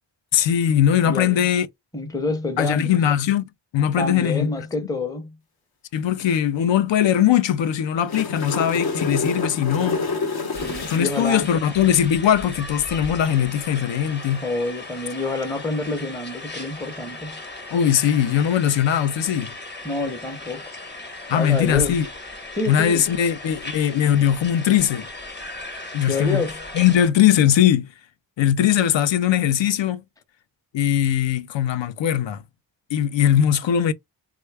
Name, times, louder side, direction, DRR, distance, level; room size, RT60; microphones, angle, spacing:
voice 1, 0.3-1.7 2.6-3.4 3.7-4.5 5.9-10.0 10.9-14.4 17.7-19.5 21.3-22.1 22.7-25.1 25.9-26.4 26.7-27.9 28.4-30.0 30.7-32.4 32.9-33.9, left 10 dB, 80° left, 0.5 m, -20 dB
voice 2, 1.0-1.5 1.9-3.0 4.0-5.4 10.6-11.5 14.4-17.4 19.8-20.7 21.3-22.0 22.5-23.1 26.1-26.6, left 2 dB, 10° left, 0.6 m, -27 dB
sound 1, 7.8-11.4 15.3-15.4, left 4 dB, 55° left, 0.8 m, -28 dB
sound 2, 10.5-27.1, left 2 dB, 25° left, 0.9 m, -37 dB
3.6 x 2.2 x 3.3 m
wide cardioid pair, 80°, 45 cm